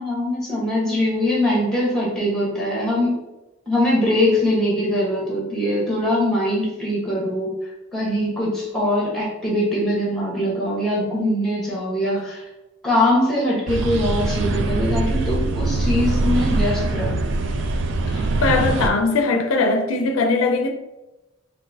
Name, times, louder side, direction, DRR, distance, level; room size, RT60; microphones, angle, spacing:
voice 1, 0.0-3.2 3.7-7.5 7.9-12.4 12.8-17.2, left 1 dB, ahead, 1.1 m, -22 dB
sound 1, 13.7-18.9, right 2 dB, 60° right, 0.4 m, -22 dB
voice 2, 18.1-20.7, left 3 dB, 80° left, 0.4 m, -20 dB
3.8 x 2.7 x 2.7 m
head